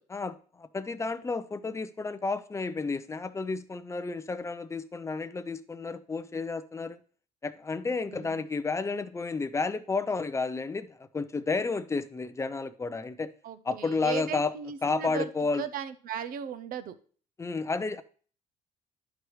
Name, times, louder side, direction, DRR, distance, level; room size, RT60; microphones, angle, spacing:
voice 1, 0.1-7.0 7.4-13.3 13.7-14.5 14.8-15.6 17.4-18.0, left 4 dB, 15° left, 0.5 m, -31 dB
voice 2, 8.1-8.5 13.4-16.9, right 8 dB, 60° right, 0.7 m, -37 dB
11.0 x 4.7 x 3.1 m
cardioid pair, 110°, 17 cm